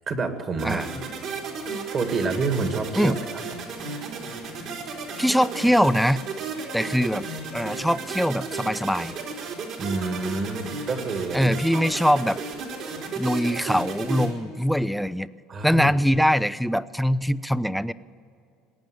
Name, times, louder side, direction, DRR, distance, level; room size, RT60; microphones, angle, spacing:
voice 1, 0.1-0.9 1.9-3.1 9.8-11.8 15.5-16.2, right 3 dB, 40° right, 6 dB, 2.2 m, -28 dB
sound 1, 0.6-14.3, right 4 dB, 60° right, 3.6 m, -34 dB
voice 2, 5.2-6.2 6.7-7.3 7.5-9.1 11.3-12.4 13.2-15.3 15.6-17.9, equal, ahead, 16 dB, 0.5 m, -22 dB
20.0 x 9.3 x 7.9 m, 2.5 s
supercardioid pair, 95°, 0 cm